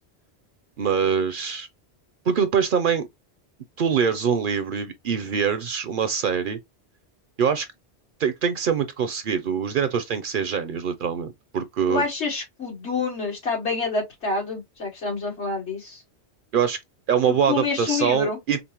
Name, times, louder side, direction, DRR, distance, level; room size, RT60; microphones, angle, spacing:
voice 1, 0.8-1.7 2.3-3.1 3.8-6.6 7.4-7.7 8.2-12.0 16.5-16.8 17.1-18.6, right 7 dB, 60° right, 0.6 m, -24 dB
voice 2, 11.9-16.0 17.5-18.4, left 4 dB, 80° left, 2.3 m, -27 dB
5.1 x 2.1 x 2.9 m
omnidirectional pair, 1.1 m